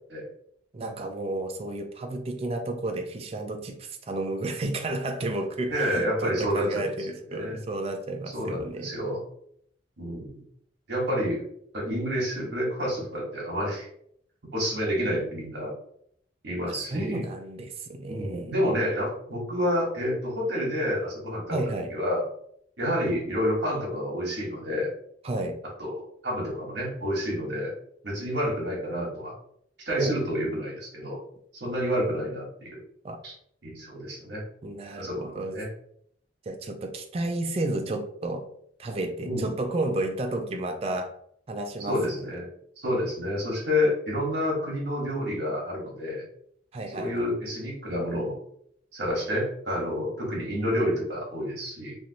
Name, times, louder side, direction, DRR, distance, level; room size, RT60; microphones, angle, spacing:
voice 1, 0.7-8.9 16.7-18.5 21.5-21.9 25.2-25.6 30.0-30.1 33.0-33.2 34.6-35.5 36.5-38.4 38.8-41.1 41.5-42.3 46.7-47.2, right 2 dB, 30° right, 5 dB, 0.4 m, -32 dB
voice 2, 5.7-6.8 7.3-7.6 8.3-9.2 10.0-10.4 10.9-11.4 11.7-13.9 14.5-15.7 16.4-17.2 18.1-21.6 21.9-22.2 22.8-24.9 25.8-27.7 28.0-29.3 29.8-31.2 31.5-32.8 33.2-33.3 33.6-34.4 34.9-35.7 39.2-39.5 41.9-42.5 42.8-46.2 46.9-48.4 48.9-52.0, equal, 65° right, -3 dB, 1.1 m, -29 dB
3.2 x 2.5 x 2.7 m, 0.66 s
head